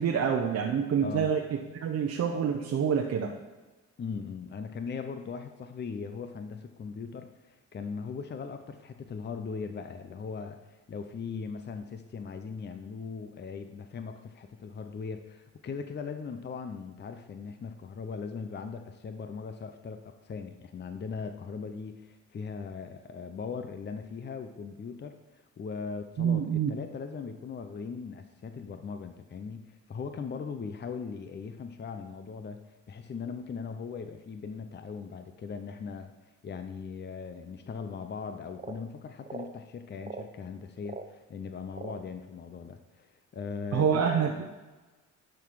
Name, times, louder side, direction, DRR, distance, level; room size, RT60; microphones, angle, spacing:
voice 1, 0.0-1.4 1.7-3.3 26.2-26.7 43.7-44.3, right 7 dB, 55° right, 1 dB, 0.9 m, -26 dB
voice 2, 4.0-32.6 32.9-36.1 36.4-44.0, left 5 dB, 35° left, 8 dB, 0.7 m, -39 dB
sound 1, 38.6-38.8 39.2-39.6 40.0-40.3 40.8-41.1 41.7-42.1, right 4 dB, 25° right, 0.9 m, -41 dB
10.5 x 6.0 x 4.8 m, 1.2 s
cardioid pair, 90°, 30 cm